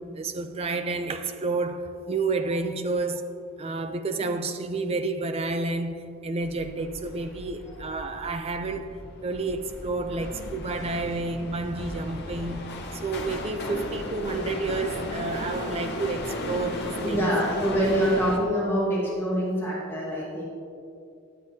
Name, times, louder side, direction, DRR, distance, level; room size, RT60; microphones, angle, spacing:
voice 1, 0.1-3.3 3.6-17.3, right 3 dB, 30° right, 0.4 m, -30 dB
sound 1, 6.4-18.4, left 1 dB, 50° left, 0.9 m, -36 dB
voice 2, 17.0-20.4, equal, 10° left, 1.3 m, -25 dB
10.0 x 7.9 x 2.8 m
head